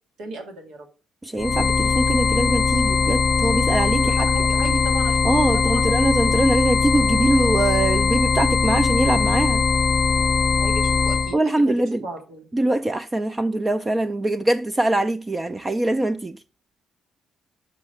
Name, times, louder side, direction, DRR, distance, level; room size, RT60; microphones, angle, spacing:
voice 1, 0.2-0.9 4.0-6.1 10.6-11.4 11.7-12.5, right 2 dB, 85° right, 2.2 m, -36 dB
voice 2, 1.2-4.3 5.2-9.6 11.3-12.0 12.5-16.4, right 1 dB, 20° right, 0.4 m, -22 dB
sound 1, 1.4-11.3, left 5 dB, 40° left, 0.5 m, -20 dB
6.2 x 5.6 x 6.6 m
cardioid pair, 90°, 0 cm